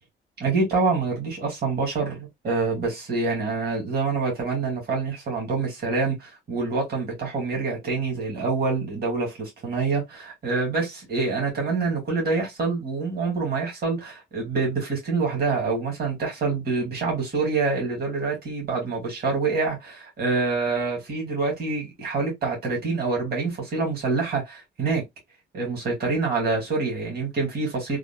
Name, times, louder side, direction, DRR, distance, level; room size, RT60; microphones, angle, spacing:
voice 1, 0.4-25.0 25.5-28.0, right 4 dB, 50° right, 1.8 m, -26 dB
3.6 x 2.0 x 2.2 m
cardioid pair, 90°, 20 cm